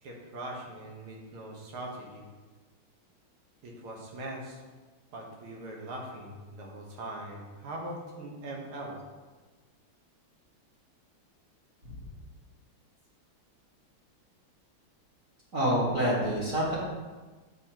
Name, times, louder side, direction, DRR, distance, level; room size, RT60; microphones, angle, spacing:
voice 1, 0.0-2.2 3.6-4.6 5.1-9.0, right 1 dB, 80° right, -1 dB, 2.1 m, -41 dB
voice 2, 15.5-16.7, equal, 40° right, -8 dB, 1.8 m, -27 dB
7.7 x 5.8 x 2.9 m, 1.3 s
omnidirectional pair, 2.4 m